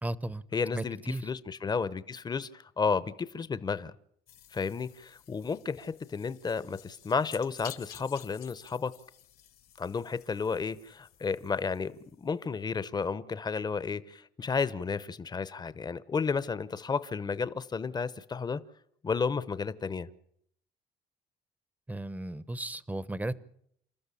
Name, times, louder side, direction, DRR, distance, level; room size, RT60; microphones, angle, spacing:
voice 1, 0.0-0.4 0.7-1.3 21.9-23.4, right 1 dB, 10° right, 18 dB, 0.9 m, -35 dB
voice 2, 0.5-3.9 4.5-8.9 9.8-18.6 19.0-20.1, left 5 dB, 25° left, 16 dB, 0.9 m, -32 dB
sound 1, 4.3-12.4, left 10 dB, 65° left, 1.4 m, -52 dB
28.5 x 13.0 x 8.4 m, 0.71 s
cardioid pair, 110°, 17 cm